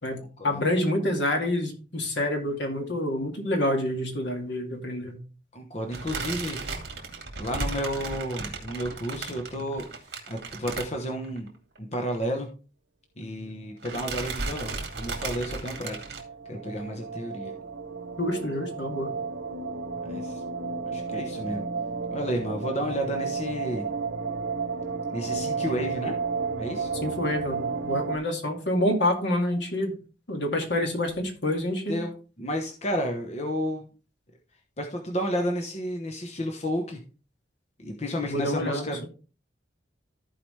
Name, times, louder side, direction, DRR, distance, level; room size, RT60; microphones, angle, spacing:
voice 1, 0.0-5.2 18.2-19.1 27.0-29.9 30.3-32.0 38.3-39.1, left 1 dB, 70° left, 3 dB, 2.2 m, -27 dB
voice 2, 5.5-6.6 7.4-9.8 10.3-12.5 13.2-16.0 16.5-17.5 20.0-20.4 20.9-21.6 22.1-23.8 25.1-26.2 26.6-26.9 31.9-32.1 32.4-33.9 34.8-37.0 37.8-39.1, equal, 35° left, 3 dB, 1.0 m, -31 dB
sound 1, 5.9-11.5 11.8-11.9 12.2-12.3 13.3-13.6 13.8-16.2, right 3 dB, 60° right, 2.2 m, -35 dB
sound 2, 15.0-28.2, right 4 dB, 90° right, 0.9 m, -32 dB
14.5 x 4.9 x 3.3 m, 0.36 s
head